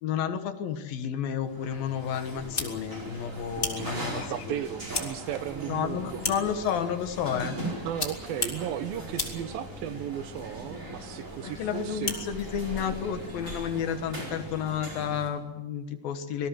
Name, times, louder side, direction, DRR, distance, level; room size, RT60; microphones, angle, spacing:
voice 1, 0.0-4.5 5.7-7.6 11.4-16.5, left 8 dB, 70° left, 9 dB, 3.1 m, -31 dB
sound 1, 1.4-15.3, right 1 dB, 20° right, 4.9 m, -40 dB
sound 2, 2.4-13.8, left 3 dB, 25° left, 2.1 m, -39 dB
voice 2, 3.5-6.2 7.8-12.2, right 10 dB, 75° right, 12 dB, 2.6 m, -35 dB
25.5 x 19.0 x 7.8 m, 1.0 s
omnidirectional pair, 4.5 m